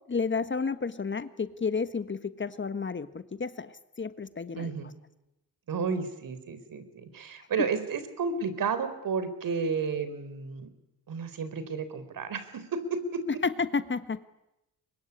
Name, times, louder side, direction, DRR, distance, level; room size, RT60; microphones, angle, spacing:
voice 1, 0.1-4.7 13.4-14.2, left 4 dB, 30° left, 13 dB, 1.4 m, -31 dB
voice 2, 4.5-4.9 5.7-10.7 11.1-13.2, right 5 dB, 60° right, 12 dB, 4.2 m, -32 dB
24.0 x 21.5 x 9.9 m, 0.91 s
supercardioid pair, 65°, 38 cm